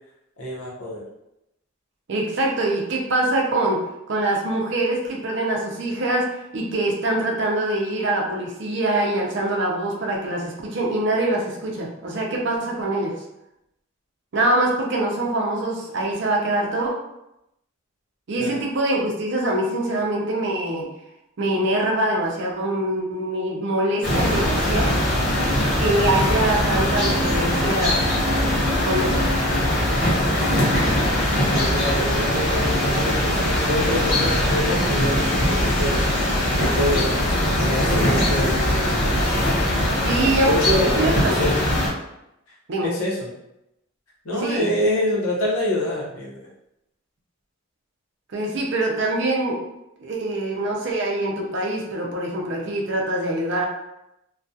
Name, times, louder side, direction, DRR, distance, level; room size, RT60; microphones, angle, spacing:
voice 1, 0.4-1.0 18.4-18.6 31.5-38.9 40.5-41.6 42.8-43.2 44.2-46.4, left 1 dB, 85° left, -4 dB, 0.8 m, -26 dB
voice 2, 2.1-3.8 4.1-13.1 14.3-16.9 18.3-20.9 21.4-24.9 25.8-28.0 28.8-29.3 40.0-40.5 41.0-41.5 42.7-42.9 44.4-44.7 48.3-49.6 50.0-53.7, right 1 dB, 55° right, -1 dB, 0.5 m, -24 dB
sound 1, 24.0-41.9, left 1 dB, 45° left, 0.8 m, -21 dB
2.3 x 2.2 x 2.6 m, 0.86 s
head